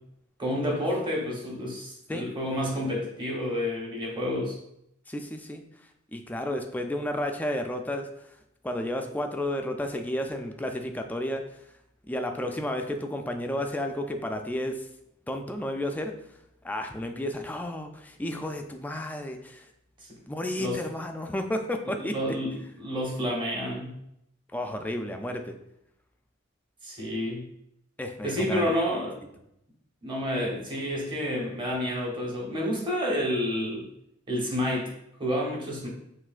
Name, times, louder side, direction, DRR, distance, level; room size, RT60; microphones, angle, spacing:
voice 1, 0.4-4.6 20.6-20.8 21.8-24.0 26.8-27.5 28.2-29.1 30.0-33.9 34.3-34.9 35.2-35.9, equal, 25° right, -3 dB, 1.0 m, -29 dB
voice 2, 5.1-5.6 6.1-8.1 8.6-11.4 12.1-14.9 15.3-16.1 16.6-19.6 20.3-22.2 24.5-25.5 28.0-28.8, left 1 dB, 10° left, 4 dB, 0.3 m, -32 dB
5.9 x 2.5 x 2.4 m, 0.79 s
head